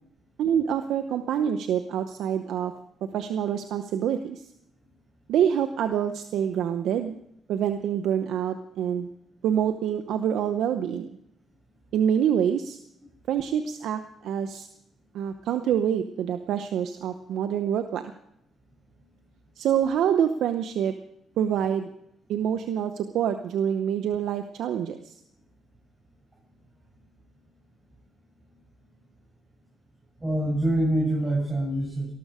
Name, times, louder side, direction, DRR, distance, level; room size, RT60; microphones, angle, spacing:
voice 1, 0.4-2.7 3.1-4.5 5.3-7.2 7.5-9.1 9.4-11.1 11.9-12.8 13.3-14.7 15.1-18.0 19.6-20.9 21.4-21.9 22.3-25.1, right 9 dB, 80° right, 8 dB, 0.8 m, -26 dB
voice 2, 30.2-32.1, right 1 dB, 20° right, -4 dB, 7.5 m, -25 dB
19.0 x 13.0 x 5.0 m, 0.76 s
cardioid pair, 90°, 0 cm